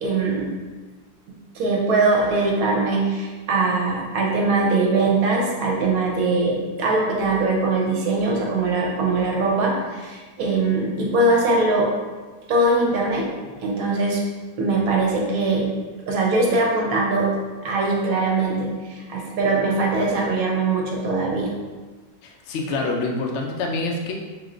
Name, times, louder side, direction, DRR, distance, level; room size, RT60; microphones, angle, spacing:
voice 1, 0.0-0.5 1.5-11.9 12.5-13.3 13.6-14.2 14.6-15.7 16.1-17.3 17.6-21.5, right 3 dB, 65° right, -1 dB, 1.0 m, -21 dB
voice 2, 22.2-24.1, left 3 dB, 75° left, 0 dB, 0.6 m, -26 dB
3.1 x 2.9 x 3.7 m, 1.3 s
omnidirectional pair, 1.9 m